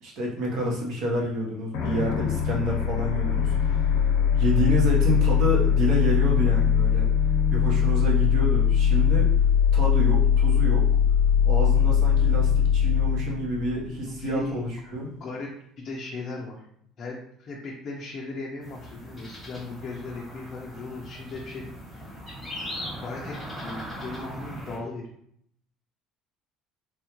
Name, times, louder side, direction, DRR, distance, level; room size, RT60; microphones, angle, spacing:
voice 1, 0.0-4.0 4.4-7.1 7.5-9.3 9.7-10.9 11.4-15.1, equal, 55° right, -2 dB, 1.0 m, -28 dB
sound 1, 1.7-14.5, left 8 dB, 75° left, 0.6 m, -21 dB
voice 2, 14.0-14.7 15.2-16.6 17.0-22.1 23.0-25.0, left 3 dB, 35° left, -2 dB, 0.5 m, -37 dB
sound 2, 18.6-24.8, equal, ahead, 1.3 m, -39 dB
3.5 x 2.4 x 3.0 m, 0.68 s
cardioid pair, 155°, 0 cm